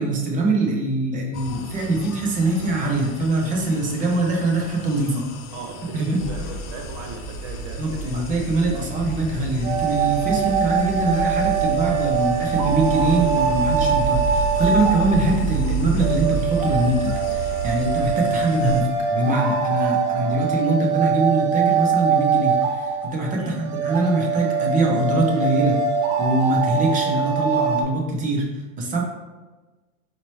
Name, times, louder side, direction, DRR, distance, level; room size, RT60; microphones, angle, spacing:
voice 1, 0.0-5.3 5.9-6.2 7.8-25.8 26.2-28.5 28.8-29.0, right 2 dB, 20° right, 0 dB, 0.5 m, -23 dB
sound 1, 1.3-18.8, right 2 dB, 65° left, 0.7 m, -35 dB
voice 2, 5.5-8.4 19.8-20.2 23.4-23.7, right 4 dB, 55° right, 3 dB, 0.8 m, -38 dB
sound 2, 6.2-18.1, right 4 dB, 35° right, 1.2 m, -31 dB
sound 3, 9.6-27.8, right 6 dB, 85° right, 0.8 m, -23 dB
4.3 x 2.9 x 3.0 m, 1.2 s
supercardioid pair, 135°, 43 cm